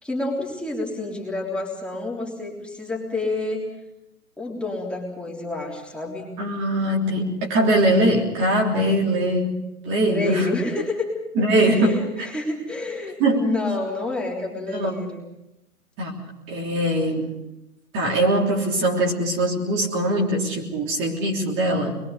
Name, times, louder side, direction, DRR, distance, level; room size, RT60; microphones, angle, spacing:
voice 1, 0.0-3.6 4.4-6.3 10.1-11.1 11.6-15.2, left 2 dB, ahead, -4 dB, 3.5 m, -29 dB
voice 2, 6.4-9.6 9.8-10.5 11.3-12.3 13.2-13.4 14.7-14.9 16.0-17.3 17.9-22.0, right 1 dB, 25° right, -1 dB, 3.3 m, -22 dB
27.5 x 22.5 x 5.2 m, 0.88 s
figure-of-eight pair, 115°, 44 cm